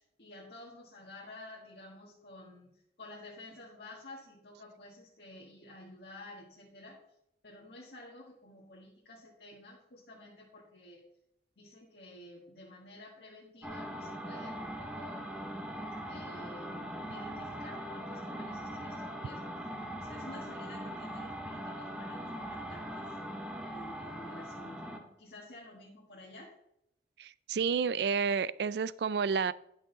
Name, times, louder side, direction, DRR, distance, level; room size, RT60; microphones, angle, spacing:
voice 1, 0.0-7.0 7.4-11.0 11.6-15.3 16.1-23.1 23.7-26.5, left 1 dB, 65° left, -4 dB, 1.6 m, -51 dB
sound 1, 13.6-25.1, equal, 5° right, 0.9 m, -41 dB
voice 2, 27.2-29.5, right 6 dB, 65° right, 19 dB, 0.4 m, -30 dB
11.0 x 6.3 x 4.0 m, 0.78 s
head